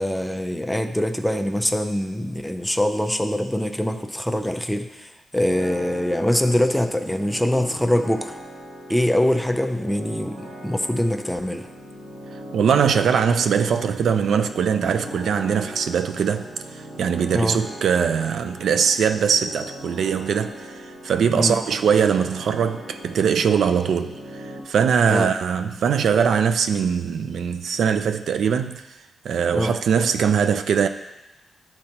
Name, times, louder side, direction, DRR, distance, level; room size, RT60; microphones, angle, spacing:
voice 1, 0.0-8.4 8.9-11.7 17.3-17.6 21.3-21.6 25.1-25.3 29.5-29.7, left 1 dB, 5° left, 0.4 m, -23 dB
sound 1, 5.4-24.6, equal, 60° right, 1.9 m, -39 dB
voice 2, 12.5-16.5 16.7-28.8 29.2-30.9, right 7 dB, 80° right, 0.4 m, -21 dB
12.0 x 4.3 x 2.9 m
wide cardioid pair, 150°, 0 cm